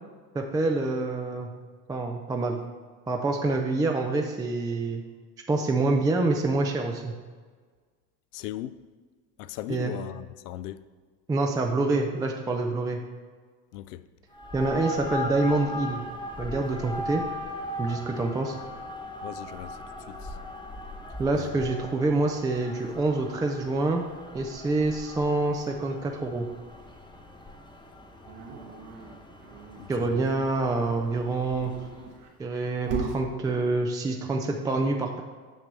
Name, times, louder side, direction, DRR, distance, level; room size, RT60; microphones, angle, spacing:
voice 1, 0.3-1.5 1.9-2.6 3.1-5.0 5.5-7.1 9.7-9.9 11.3-13.0 14.5-16.0 16.4-17.2 17.8-18.6 21.2-24.0 24.3-26.5 29.9-31.7 32.4-35.2, right 2 dB, 10° right, 0.4 m, -26 dB
voice 2, 8.3-8.8 9.4-10.8 13.7-14.1 19.2-19.8 20.1-20.4 21.4-21.6 29.8-30.3, left 13 dB, 70° left, 0.5 m, -38 dB
sound 1, 14.3-32.2, left 1 dB, 10° left, 1.0 m, -39 dB
Dog, 28.2-29.8 31.4-33.2, right 4 dB, 65° right, 1.6 m, -36 dB
9.0 x 5.9 x 3.3 m
hypercardioid pair, 80°, 50 cm